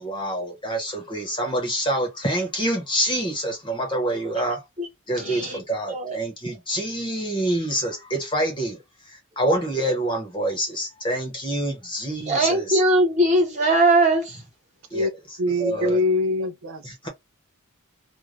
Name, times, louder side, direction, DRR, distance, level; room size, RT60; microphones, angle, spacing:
voice 1, 0.0-4.6 5.1-12.8 14.9-16.0 16.8-17.1, right 1 dB, 20° left, 0.8 m, -27 dB
voice 2, 5.2-5.6 5.9-6.2 12.3-14.5, right 2 dB, 30° right, 1.1 m, -20 dB
voice 3, 15.4-17.1, left 1 dB, 60° right, 0.4 m, -24 dB
2.5 x 2.2 x 3.1 m
head